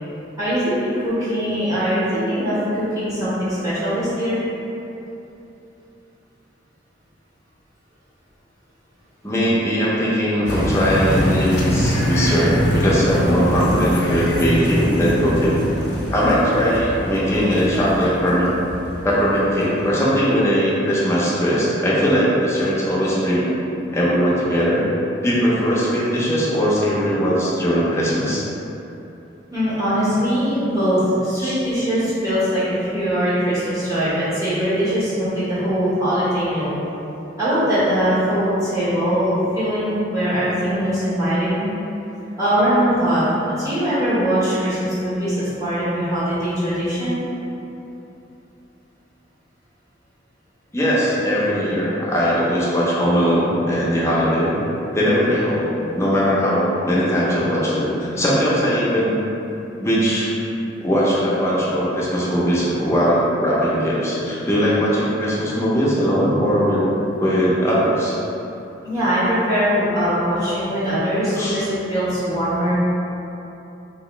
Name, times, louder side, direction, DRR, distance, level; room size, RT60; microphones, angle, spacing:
voice 1, 0.4-4.4 29.5-36.7 37.4-41.7 42.4-47.1 68.8-72.8, equal, 20° right, -12 dB, 1.2 m, -21 dB
voice 2, 9.2-15.6 16.1-18.5 19.0-23.5 23.9-24.8 25.2-28.4 31.4-31.5 50.7-54.6 54.9-59.2 59.8-60.3 60.8-66.8 67.2-68.2 71.4-71.6, equal, 15° left, -7 dB, 0.6 m, -19 dB
sound 1, 10.4-19.9, equal, 60° left, 0.6 m, -24 dB
2.9 x 2.9 x 3.1 m, 2.9 s
head